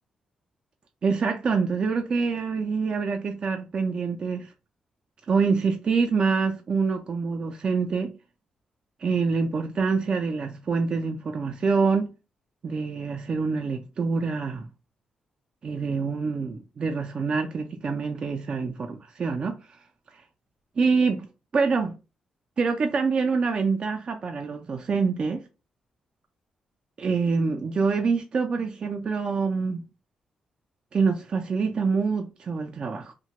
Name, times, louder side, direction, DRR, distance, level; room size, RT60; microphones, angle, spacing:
voice 1, 1.0-4.5 5.3-8.1 9.0-12.1 12.6-14.7 15.6-19.8 20.1-20.2 20.8-21.3 21.5-22.0 22.6-25.4 27.0-29.9 30.9-33.1, right 4 dB, 40° right, 0.3 m, -26 dB
2.8 x 2.1 x 2.9 m
cardioid pair, 135°, 2 cm